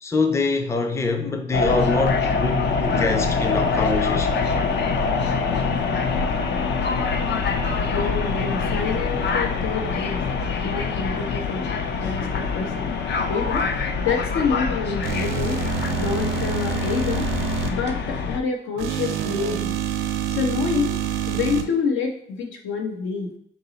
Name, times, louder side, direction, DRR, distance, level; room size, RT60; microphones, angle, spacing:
voice 1, 0.0-4.4, left 3 dB, 15° left, 0.5 m, -24 dB
sound 1, 1.5-18.4, left 4 dB, 60° left, 0.5 m, -24 dB
voice 2, 7.9-10.2 10.6-12.9 13.3-13.7 14.0-15.6 16.0-17.3 17.6-19.7 20.3-21.0 21.3-23.3, left 5 dB, 80° left, 0.9 m, -27 dB
sound 2, 15.0-17.7 18.8-21.6, right 8 dB, 80° right, 0.6 m, -27 dB
5.4 x 2.0 x 3.9 m
cardioid pair, 90°, 20 cm